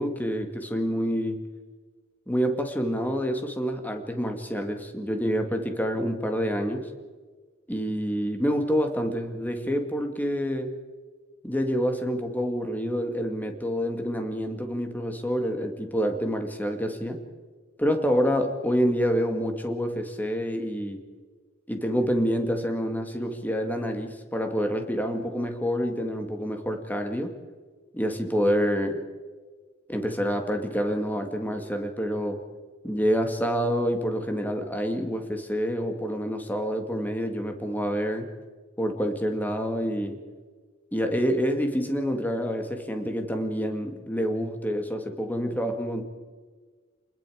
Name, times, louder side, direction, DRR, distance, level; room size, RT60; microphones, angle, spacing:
voice 1, 0.0-1.4 2.3-6.9 7.7-10.7 11.4-17.2 17.8-21.0 21.7-27.3 27.9-29.0 29.9-32.4 32.8-38.3 38.8-40.2 40.9-46.0, equal, 10° left, 5 dB, 2.1 m, -27 dB
27.5 x 21.0 x 5.0 m, 1.5 s
head